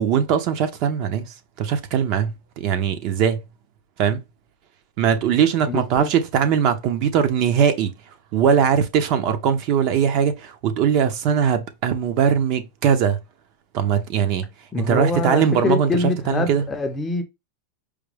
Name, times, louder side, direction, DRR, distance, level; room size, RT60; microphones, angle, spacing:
voice 1, 0.0-3.4 4.0-4.2 5.0-7.9 8.3-13.2 13.7-14.5 14.8-15.9 16.3-16.6, right 7 dB, 40° right, 0.7 m, -20 dB
voice 2, 5.7-6.1 14.7-17.2, left 3 dB, 15° left, 0.6 m, -24 dB
4.9 x 2.2 x 3.3 m
supercardioid pair, 160°, 0 cm